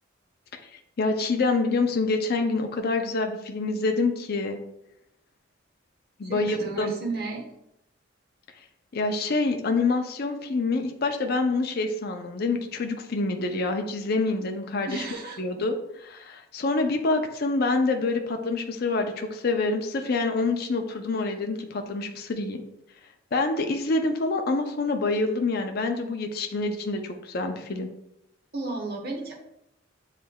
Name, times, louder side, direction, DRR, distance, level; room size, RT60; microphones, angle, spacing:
voice 1, 0.7-4.6 6.2-6.9 8.9-15.0 15.4-22.6 23.3-27.9, left 3 dB, 50° left, 4 dB, 0.5 m, -26 dB
voice 2, 6.2-7.4 14.9-15.4 28.5-29.4, right 3 dB, 50° right, -1 dB, 1.1 m, -33 dB
7.2 x 3.2 x 2.3 m, 0.81 s
head